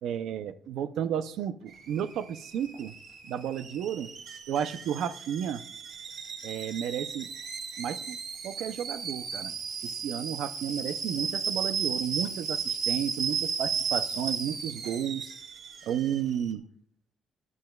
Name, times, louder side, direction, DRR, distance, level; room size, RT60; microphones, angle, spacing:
voice 1, 0.0-2.9 3.2-4.1 4.5-5.6 6.4-7.3 7.8-8.2 8.4-9.5 9.8-15.3 15.8-16.6, right 9 dB, 80° right, 11 dB, 0.5 m, -32 dB
Alarm / Boiling, 1.7-16.5, right 6 dB, 65° right, 1.6 m, -35 dB
18.5 x 11.0 x 2.3 m, 0.63 s
cardioid pair, 90°, 0 cm